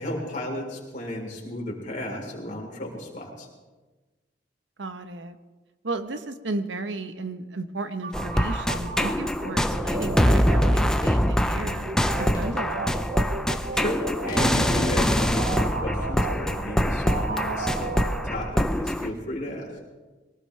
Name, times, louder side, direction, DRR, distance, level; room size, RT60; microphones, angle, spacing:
voice 1, 0.0-3.5 13.7-19.7, left 1 dB, 45° left, -1 dB, 3.8 m, -33 dB
voice 2, 4.8-5.4 5.8-11.9 12.2-12.9, right 2 dB, 85° right, 9 dB, 1.0 m, -34 dB
sound 1, 8.0-18.8, right 4 dB, 50° right, 0.6 m, -35 dB
sound 2, 8.1-19.1, equal, 5° left, 0.6 m, -24 dB
sound 3, 11.0-11.5 12.3-12.8 14.3-15.3, left 1 dB, 25° left, 2.6 m, -35 dB
22.5 x 18.0 x 3.3 m, 1.2 s
head